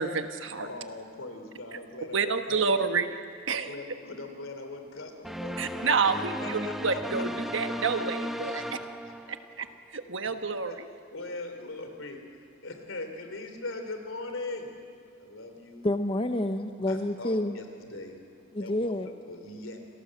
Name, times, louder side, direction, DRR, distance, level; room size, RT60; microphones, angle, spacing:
voice 1, 0.0-0.7 2.1-3.1 3.5-3.7 5.6-8.6 9.3-9.7 9.9-10.9, right 5 dB, 65° right, 7 dB, 1.3 m, -29 dB
voice 2, 0.6-2.8 3.5-8.6 9.0-9.1 10.6-10.8 11.1-12.2 12.6-14.7 15.2-15.9 16.9-18.2 18.6-18.8 19.3-19.8, left 2 dB, 75° left, 6 dB, 3.3 m, -41 dB
sound 1, 5.2-9.7, equal, ahead, 0.9 m, -35 dB
voice 3, 15.8-17.6 18.5-19.1, left 1 dB, 25° left, 7 dB, 0.8 m, -28 dB
28.0 x 18.0 x 7.6 m, 2.4 s
head